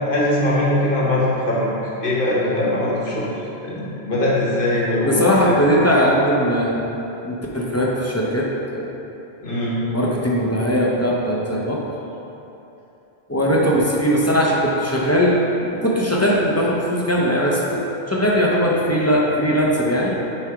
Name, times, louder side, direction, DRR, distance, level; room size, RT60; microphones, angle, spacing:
voice 1, 0.0-1.7 2.0-5.5 9.4-9.8, left 1 dB, 50° left, -5 dB, 1.3 m, -21 dB
voice 2, 5.0-6.9 7.2-9.0 9.9-11.8 13.3-17.8 18.1-20.1, equal, 20° left, -4 dB, 0.4 m, -19 dB
6.6 x 3.3 x 4.7 m, 3.0 s
omnidirectional pair, 1.2 m